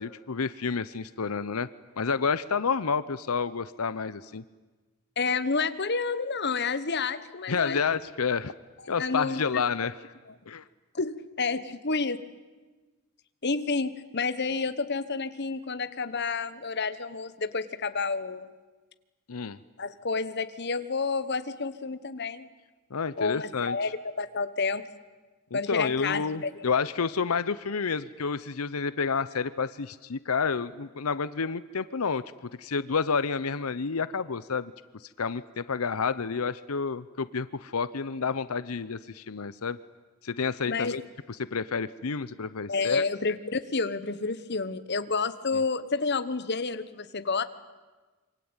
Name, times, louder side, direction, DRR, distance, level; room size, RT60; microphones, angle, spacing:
voice 1, 0.0-1.7 2.0-4.4 7.5-8.5 8.9-9.9 10.5-10.6 19.3-19.6 22.9-23.8 25.5-32.2 32.6-34.7 35.2-39.8 40.2-41.0 41.3-43.0 45.5-45.6, left 5 dB, 90° left, 15 dB, 0.8 m, -29 dB
voice 2, 5.2-7.8 9.0-9.6 10.9-12.2 13.4-18.5 19.8-22.5 23.2-23.9 24.2-24.8 25.5-26.5 40.7-41.0 42.7-47.4, left 4 dB, 50° left, 12 dB, 1.3 m, -30 dB
26.5 x 24.5 x 9.0 m, 1.3 s
head